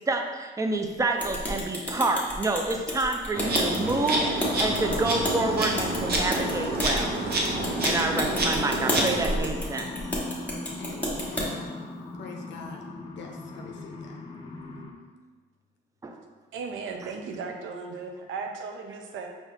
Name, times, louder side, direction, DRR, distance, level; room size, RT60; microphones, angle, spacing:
voice 1, 0.1-7.2 7.8-9.9 16.0-16.2, right 2 dB, 15° right, 4 dB, 0.5 m, -28 dB
Teeth Chattering, 1.2-11.5, equal, 5° left, 1.2 m, -31 dB
Insect, 3.3-9.4, right 1 dB, 55° right, 0.9 m, -28 dB
sound 1, 4.4-14.9, left 2 dB, 25° left, 0.6 m, -38 dB
voice 2, 10.8-11.9 12.2-12.9 13.2-14.1, left 4 dB, 65° left, 2 dB, 0.5 m, -44 dB
voice 3, 16.5-19.3, right 4 dB, 75° right, 4 dB, 0.6 m, -36 dB
4.6 x 2.7 x 3.4 m, 1.4 s
cardioid pair, 90°, 20 cm